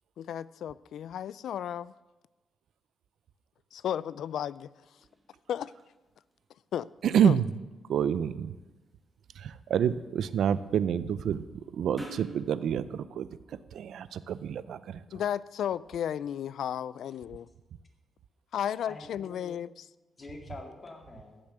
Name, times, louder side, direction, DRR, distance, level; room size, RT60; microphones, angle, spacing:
voice 1, 0.2-1.9 3.7-4.7 5.5-5.7 6.7-6.9 7.2-7.4 15.1-17.5 18.5-19.7, left 9 dB, 75° left, 20 dB, 0.3 m, -33 dB
sound 1, 3.7-12.4, right 1 dB, ahead, 2.2 m, -53 dB
voice 2, 7.0-7.5 7.9-8.5 9.4-11.4 11.7-15.0, right 8 dB, 75° right, 15 dB, 0.5 m, -28 dB
voice 3, 18.6-19.5 20.2-21.4, left 2 dB, 30° left, 2 dB, 2.2 m, -46 dB
14.5 x 7.0 x 6.7 m, 1.1 s
cardioid pair, 120°, 0 cm